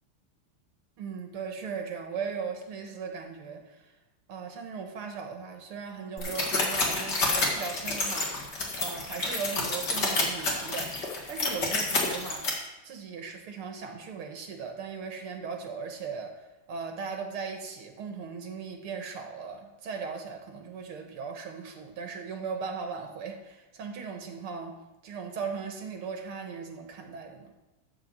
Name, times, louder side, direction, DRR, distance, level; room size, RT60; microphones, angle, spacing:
voice 1, 1.0-3.9 4.3-10.9 11.3-12.5 12.8-16.4 16.7-24.8 25.0-27.5, right 5 dB, 85° right, 4 dB, 2.1 m, -38 dB
sound 1, 6.2-12.5, left 3 dB, 50° left, 2.5 m, -29 dB
12.5 x 4.9 x 7.4 m, 1.0 s
omnidirectional pair, 2.4 m